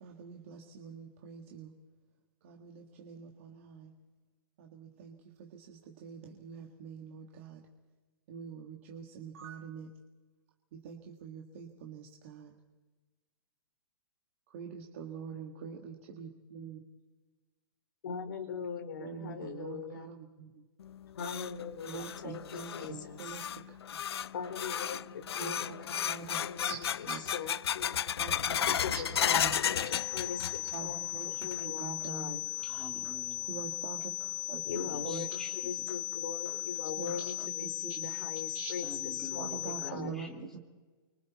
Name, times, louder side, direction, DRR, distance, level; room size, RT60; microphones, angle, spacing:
voice 1, 0.0-1.7 2.4-3.9 4.6-5.1 5.5-7.6 8.3-9.9 10.8-12.5 14.5-16.8 19.0-20.5 21.9-23.4 25.4-25.5 26.1-26.8 27.1-27.2 28.2-28.6 28.9-29.6 30.7-31.3 31.6-32.3 33.5-34.0 34.5-34.6 35.0-35.3 37.0-38.1 38.5-38.7 39.4-40.3, right 6 dB, 30° right, 1 dB, 1.8 m, -44 dB
voice 2, 18.0-20.1 21.1-23.5 24.3-28.0 28.7-32.4 34.6-40.2, left 6 dB, 55° left, 4 dB, 3.5 m, -41 dB
sound 1, 20.8-30.9 31.2-31.8 32.2-32.3 33.0-33.1 34.8-34.9 35.3-35.4 35.9-36.0 36.5-36.6 37.1-37.5, left 9 dB, 90° left, 0.6 m, -34 dB
sound 2, 29.9-39.9, left 18 dB, 25° left, 1.1 m, -37 dB
voice 3, 32.6-33.6 34.9-35.5 38.8-40.6, left 1 dB, 5° left, 0 dB, 2.3 m, -47 dB
29.5 x 24.0 x 4.2 m, 1.3 s
hypercardioid pair, 180°, 13 cm